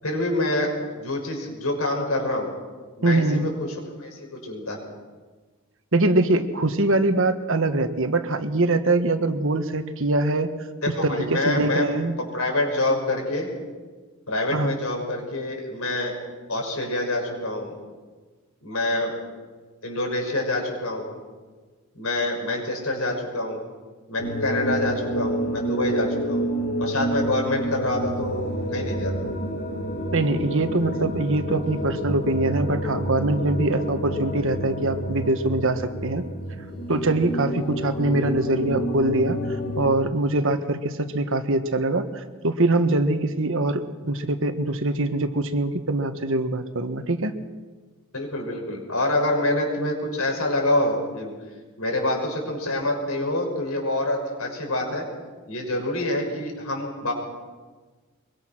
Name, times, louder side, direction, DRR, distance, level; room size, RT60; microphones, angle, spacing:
voice 1, 0.0-2.5 3.0-4.8 10.9-11.8 12.3-13.5 14.3-16.1 16.5-17.7 18.6-19.1 19.8-21.2 21.9-23.6 24.1-26.4 26.8-29.1 48.1-51.3 51.8-55.0 55.5-57.1, left 1 dB, 75° left, 1 dB, 6.5 m, -26 dB
voice 2, 3.0-3.5 5.9-10.5 11.0-12.1 14.5-14.7 30.1-36.3 36.9-47.3, right 2 dB, 60° right, 8 dB, 1.5 m, -23 dB
sound 1, 24.2-39.9, equal, 50° left, 2.2 m, -29 dB
23.5 x 23.5 x 6.1 m, 1.4 s
head